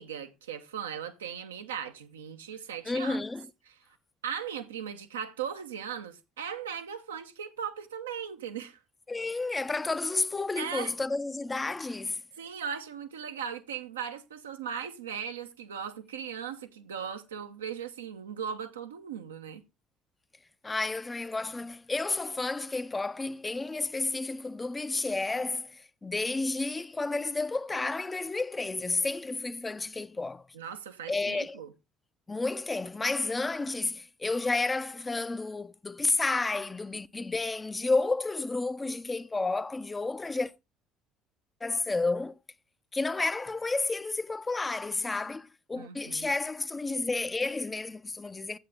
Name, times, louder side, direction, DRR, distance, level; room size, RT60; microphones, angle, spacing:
voice 1, 0.0-3.2 4.2-8.8 10.6-10.9 12.4-19.6 30.5-31.7 45.7-46.3, right 8 dB, 75° right, 1.0 m, -38 dB
voice 2, 2.8-3.5 9.1-12.2 20.6-30.5 31.1-31.6 32.3-40.5 41.6-42.4 42.9-48.6, left 3 dB, 20° left, 0.6 m, -31 dB
12.0 x 8.4 x 3.5 m
figure-of-eight pair, 55°, 0 cm